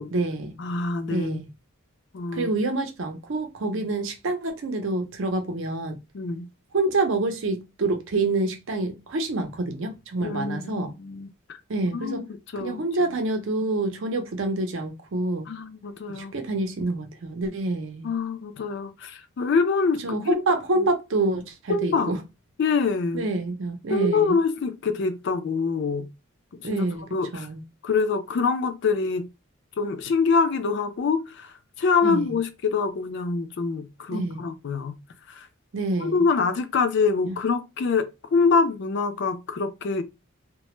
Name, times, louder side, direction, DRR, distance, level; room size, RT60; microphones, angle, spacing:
voice 1, 0.0-0.5 1.1-1.5 2.3-6.0 6.7-10.9 11.7-12.2 12.6-15.4 16.1-18.1 20.0-22.2 23.1-24.4 26.6-27.0 27.3-27.6 32.0-32.3 34.1-34.4 35.7-36.2 37.3-37.4, right 2 dB, 65° right, 0.5 m, -27 dB
voice 2, 0.6-1.4 2.1-2.5 6.1-6.5 10.2-11.3 11.9-12.3 12.5-12.8 15.5-16.3 18.0-20.4 21.7-22.1 22.6-23.3 23.9-26.1 26.6-26.8 27.1-27.5 27.8-29.3 29.8-35.0 35.3-35.5 36.0-40.0, left 4 dB, 55° left, 0.3 m, -25 dB
2.1 x 2.0 x 3.0 m
head